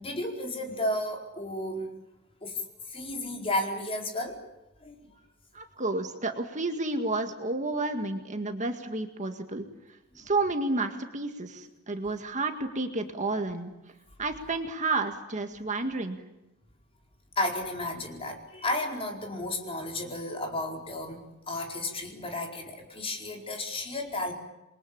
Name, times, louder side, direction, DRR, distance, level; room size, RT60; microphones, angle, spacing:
voice 1, 0.0-1.9 2.4-2.6 2.9-4.4 4.8-5.0 10.2-10.3 17.4-24.3, left 1 dB, 25° left, 2 dB, 4.7 m, -33 dB
voice 2, 5.5-9.7 10.2-13.7 14.2-16.2, right 2 dB, 35° right, 5 dB, 1.9 m, -31 dB
28.5 x 23.0 x 8.8 m, 0.95 s
head